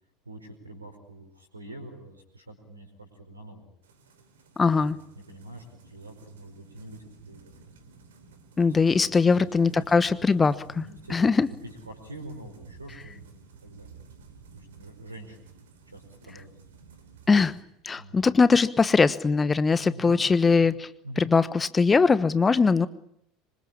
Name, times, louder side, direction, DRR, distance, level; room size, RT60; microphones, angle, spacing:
voice 1, 0.2-3.7 4.7-7.5 8.6-11.2 11.6-15.6 15.9-16.7 18.0-18.2 19.8-20.2 20.5-20.6 21.0-21.3, right 1 dB, 85° right, 7 dB, 4.8 m, -45 dB
sound 1, 3.8-17.6, right 5 dB, 70° right, 4.3 m, -53 dB
voice 2, 4.6-5.0 8.6-10.8 11.1-11.5 17.3-17.6 17.8-20.9 21.2-22.9, left 4 dB, 20° left, 16 dB, 1.2 m, -21 dB
26.5 x 24.5 x 8.8 m, 0.74 s
figure-of-eight pair, 70°, 0 cm